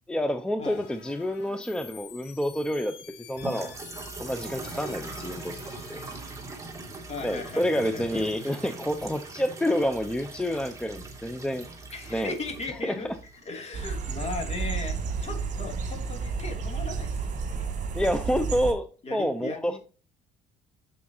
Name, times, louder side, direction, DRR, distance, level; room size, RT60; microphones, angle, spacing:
voice 1, 0.1-2.9 3.3-3.8 4.2-5.6 5.9-6.0 7.2-11.7 12.1-12.3 12.8-13.0 17.9-19.8, equal, 5° left, 9 dB, 0.6 m, -28 dB
sound 1, 0.6-6.2, left 7 dB, 85° left, 1.9 m, -48 dB
sound 2, 3.4-13.5, right 3 dB, 20° right, 2.2 m, -41 dB
voice 2, 7.1-8.3 11.9-17.7 19.0-19.8, left 3 dB, 40° left, 4 dB, 2.6 m, -38 dB
sound 3, 13.7-18.7, right 5 dB, 45° right, 2.0 m, -31 dB
8.3 x 7.0 x 2.8 m, 0.37 s
cardioid pair, 110°, 17 cm